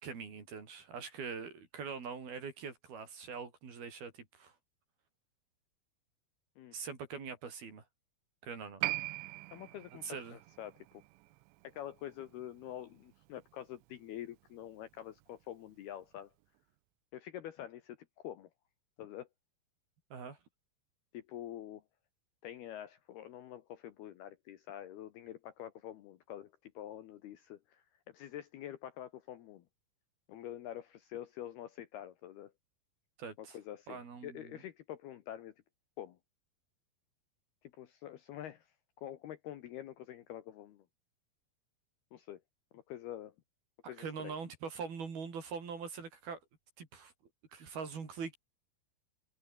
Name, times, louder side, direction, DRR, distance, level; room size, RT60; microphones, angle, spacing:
voice 1, 0.0-4.5 6.7-7.8 8.4-8.8 10.0-10.4 20.1-20.4 33.2-33.6 33.9-34.6 43.8-46.4 46.8-47.1 47.5-48.4, right 5 dB, 50° right, 6.3 m, -43 dB
Piano, 8.8-15.8 16.0-16.1, right 22 dB, 85° right, 2.6 m, -43 dB
voice 2, 9.5-10.7 11.6-16.3 17.1-18.5 19.0-19.3 21.1-21.8 22.4-29.6 30.3-32.5 33.4-35.5 36.0-36.2 37.6-38.7 39.0-40.8 42.1-42.4 42.7-43.3 43.9-44.4, left 11 dB, 70° left, 2.7 m, -46 dB
omnidirectional pair, 5.7 m